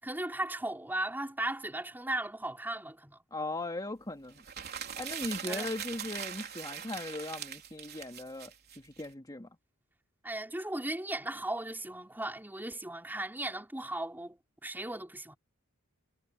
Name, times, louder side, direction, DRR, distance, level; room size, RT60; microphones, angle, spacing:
voice 1, 0.0-3.2 5.5-5.7 10.2-15.4, right 1 dB, 10° right, 5.5 m, -37 dB
voice 2, 3.3-4.4 5.0-9.5, left 2 dB, 20° left, 2.5 m, -38 dB
sound 1, 4.4-9.1, right 8 dB, 45° right, 3.6 m, -41 dB
head